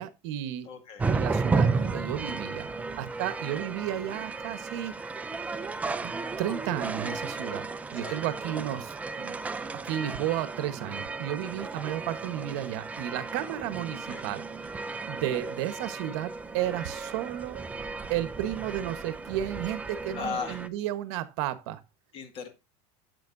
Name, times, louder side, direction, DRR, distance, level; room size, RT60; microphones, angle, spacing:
voice 1, 0.0-0.7 1.1-2.7 3.0-4.9 6.0-9.6 9.9-14.7 15.1-17.6 18.1-21.8, right 12 dB, 60° right, 1.1 m, -33 dB
voice 2, 0.7-1.0 8.0-8.2 13.9-14.2 20.1-20.6 22.1-22.5, left 6 dB, 35° left, 1.8 m, -37 dB
sound 1, 1.0-20.7, right 4 dB, 10° right, 0.4 m, -34 dB
10.5 x 7.9 x 2.6 m
supercardioid pair, 155°, 16 cm